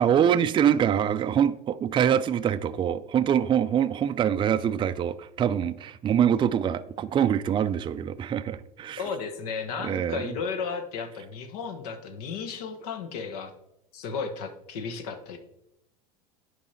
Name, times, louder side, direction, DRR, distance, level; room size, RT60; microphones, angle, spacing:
voice 1, 0.0-9.0 9.8-10.3, right 9 dB, 25° right, 0.4 m, -24 dB
voice 2, 9.0-13.5 13.9-15.4, left 5 dB, 70° left, 1.4 m, -34 dB
9.7 x 5.3 x 4.3 m
hypercardioid pair, 85°, 21 cm